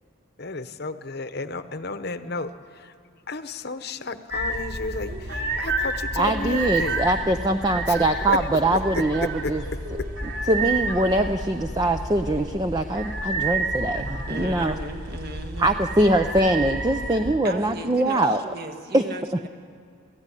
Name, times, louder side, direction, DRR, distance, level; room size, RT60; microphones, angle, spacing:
voice 1, 0.4-2.9 3.3-7.0 7.9-9.5, left 3 dB, 50° left, 10 dB, 1.0 m, -32 dB
sound 1, 4.3-17.3, right 2 dB, 70° right, 2.9 m, -30 dB
voice 2, 6.2-9.6 10.5-14.8 15.6-18.4 18.9-19.1, right 1 dB, 20° right, 7 dB, 0.5 m, -22 dB
voice 3, 14.3-15.8 17.4-19.5, right 2 dB, 50° right, 5 dB, 1.9 m, -36 dB
29.5 x 15.0 x 9.9 m, 2.4 s
head